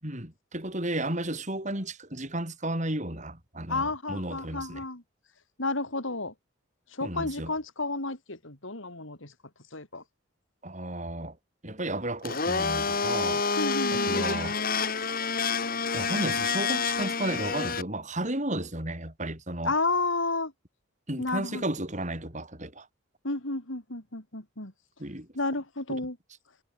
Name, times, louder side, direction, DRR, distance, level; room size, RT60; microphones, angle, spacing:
voice 1, 0.0-4.8 7.0-7.5 10.6-11.4 11.6-13.4 13.9-14.6 15.9-19.7 21.1-22.9 25.0-25.3 25.9-26.0, right 1 dB, 35° right, 6.7 m, -33 dB
voice 2, 3.7-5.0 5.6-6.3 6.9-9.3 9.7-10.0 13.6-14.5 19.6-20.5 21.2-21.6 23.2-24.7 25.3-26.2, left 3 dB, 70° left, 4.2 m, -31 dB
Domestic sounds home sounds, 12.2-17.8, left 5 dB, 45° left, 2.9 m, -28 dB
head